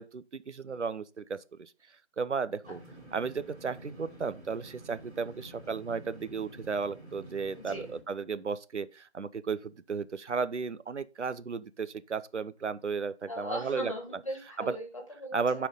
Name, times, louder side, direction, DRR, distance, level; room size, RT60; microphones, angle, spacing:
voice 1, 0.0-1.7 2.2-2.8 3.1-13.9 14.6-14.8 15.3-15.7, right 5 dB, 85° right, 0.7 m, -34 dB
sound 1, 2.6-8.0, right 1 dB, 35° right, 4.0 m, -50 dB
voice 2, 7.6-7.9 13.3-15.6, equal, 30° left, 1.9 m, -39 dB
8.9 x 4.5 x 3.8 m
figure-of-eight pair, 170°, 34 cm